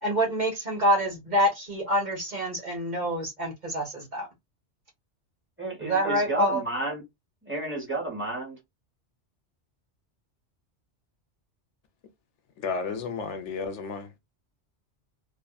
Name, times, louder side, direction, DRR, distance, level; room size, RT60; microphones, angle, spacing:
voice 1, 0.0-4.3 5.8-6.6, equal, 40° right, 1.1 m, -26 dB
voice 2, 5.6-7.0 7.4-8.6, right 1 dB, 10° right, 1.2 m, -32 dB
voice 3, 12.6-14.1, left 5 dB, 80° left, 1.0 m, -32 dB
2.6 x 2.5 x 2.3 m
omnidirectional pair, 1.2 m